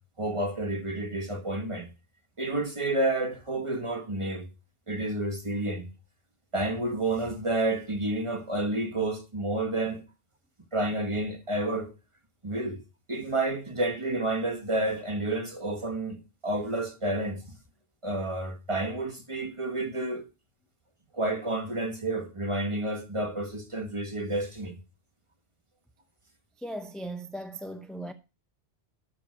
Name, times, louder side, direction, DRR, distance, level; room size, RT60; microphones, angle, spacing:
voice 1, 0.2-1.9 2.4-4.5 4.9-5.9 6.5-10.0 10.7-11.9 12.4-12.8 13.1-16.2 16.4-17.5 18.0-20.2 21.1-24.8, right 2 dB, 30° right, 1.6 m, -30 dB
voice 2, 26.6-28.1, right 1 dB, ahead, 0.6 m, -38 dB
12.0 x 7.4 x 4.6 m
omnidirectional pair, 1.1 m